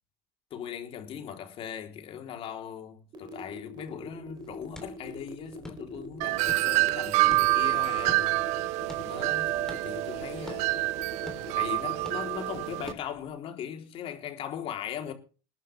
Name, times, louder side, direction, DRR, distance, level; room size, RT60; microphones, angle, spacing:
voice 1, 0.5-8.3 9.0-10.7 11.4-15.1, left 9 dB, 50° left, 3.7 m, -39 dB
sound 1, 3.1-12.5, right 2 dB, 40° right, 3.7 m, -45 dB
sound 2, 4.3-13.3, left 2 dB, 5° left, 3.6 m, -48 dB
Wind chime, 6.2-12.9, right 18 dB, 65° right, 0.7 m, -27 dB
20.5 x 11.0 x 3.5 m
supercardioid pair, 115°, 12 cm